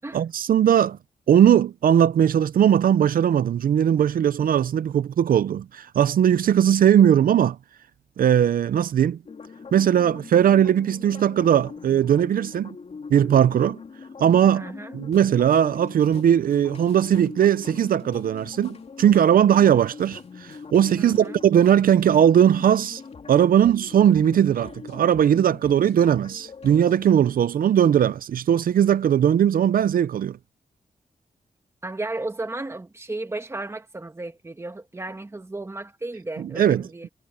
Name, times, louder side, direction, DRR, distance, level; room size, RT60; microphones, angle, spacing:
voice 1, 0.1-1.0 1.3-7.6 8.2-9.2 9.7-12.8 13.1-13.8 14.2-14.7 14.9-23.0 23.3-30.4 36.6-36.8, right 9 dB, 80° right, 0.5 m, -19 dB
sound 1, 9.3-27.1, left 5 dB, 45° left, 3.0 m, -42 dB
voice 2, 14.5-15.0 21.0-21.3 31.8-37.1, right 2 dB, 20° right, 2.1 m, -34 dB
wide cardioid pair, 150°, 15 cm